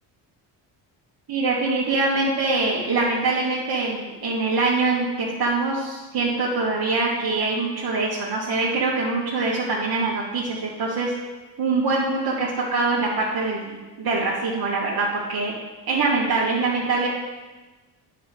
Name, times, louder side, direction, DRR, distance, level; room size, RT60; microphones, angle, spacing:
voice 1, 1.3-11.1 11.6-15.5 15.9-17.1, right 3 dB, 55° right, -7 dB, 2.1 m, -24 dB
8.9 x 6.9 x 4.7 m, 1.2 s
supercardioid pair, 80°, 45 cm